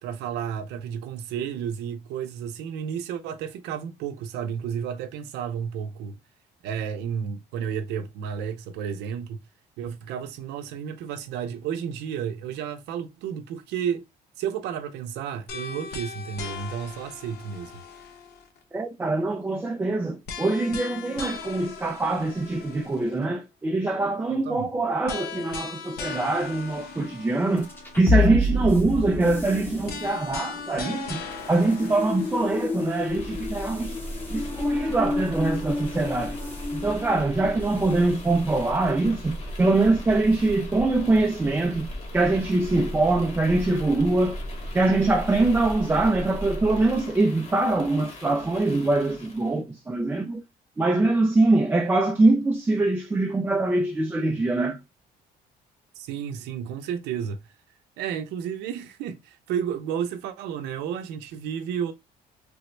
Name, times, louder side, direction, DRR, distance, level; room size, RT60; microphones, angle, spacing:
voice 1, 0.0-6.2 6.6-9.4 9.8-14.0 14.4-17.7 24.3-24.7 56.0-57.4 58.0-61.9, right 8 dB, 85° right, 0.6 m, -32 dB
sound 1, 15.5-18.6 20.3-23.2 25.1-28.2 29.9-33.3, left 5 dB, 70° left, 0.8 m, -38 dB
voice 2, 18.7-27.7 28.0-31.2 31.5-34.0 34.3-36.4 36.7-41.9 42.1-44.4 44.7-50.4 50.8-54.8, right 2 dB, 15° right, 0.4 m, -23 dB
sound 2, 27.6-38.1, left 2 dB, 10° left, 0.8 m, -29 dB
sound 3, 32.9-49.6, equal, 40° left, 1.2 m, -37 dB
3.4 x 2.1 x 3.1 m
cardioid pair, 110°, 17 cm